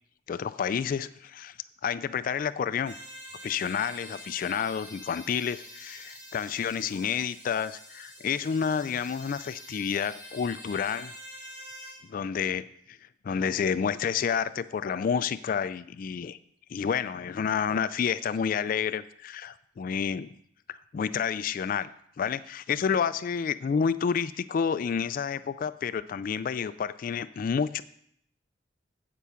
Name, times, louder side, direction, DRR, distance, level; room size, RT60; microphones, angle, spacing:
voice 1, 0.3-1.6 1.8-2.9 3.4-11.1 12.1-13.0 13.2-16.4 16.7-20.3 20.7-21.9 22.2-27.8, left 7 dB, 45° left, 15 dB, 0.3 m, -29 dB
sound 1, 2.8-12.0, equal, 25° right, 3.5 m, -46 dB
8.4 x 8.3 x 5.7 m, 0.70 s
head